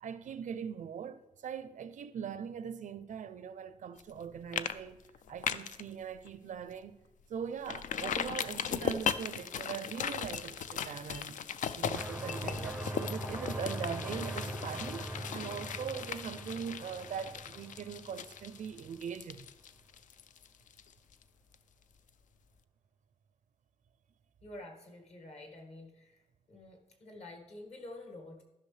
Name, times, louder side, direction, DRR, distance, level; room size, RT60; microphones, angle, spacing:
voice 1, 0.0-5.0 5.3-7.0 7.3-11.5 11.7-19.5, right 7 dB, 80° right, 0.5 m, -41 dB
sound 1, 4.0-4.2 4.5-4.7 5.0-5.8 6.3-6.4 6.8-6.9 7.7-21.2 21.5-21.6, left 8 dB, 75° left, 0.4 m, -38 dB
sound 2, 12.0-18.7, right 1 dB, 5° right, 0.5 m, -42 dB
voice 2, 24.4-26.2 26.5-28.4, left 2 dB, 55° left, 1.8 m, -49 dB
13.0 x 5.9 x 3.3 m
wide cardioid pair, 125°, 13 cm